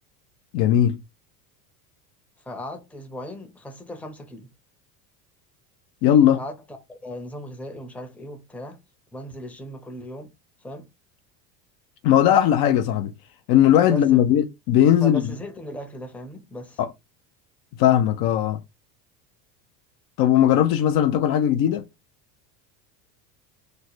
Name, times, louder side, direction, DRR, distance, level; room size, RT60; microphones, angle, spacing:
voice 1, 0.5-1.0 6.0-6.4 12.0-13.1 13.5-15.2 16.8-16.9 17.8-18.6 20.2-21.9, left 10 dB, 50° left, 0.6 m, -18 dB
voice 2, 2.4-4.5 6.3-8.8 9.1-10.3 10.6-10.9 13.8-14.3 15.0-16.8, equal, 5° left, 0.7 m, -37 dB
3.2 x 2.1 x 3.9 m
hypercardioid pair, 95°, 48 cm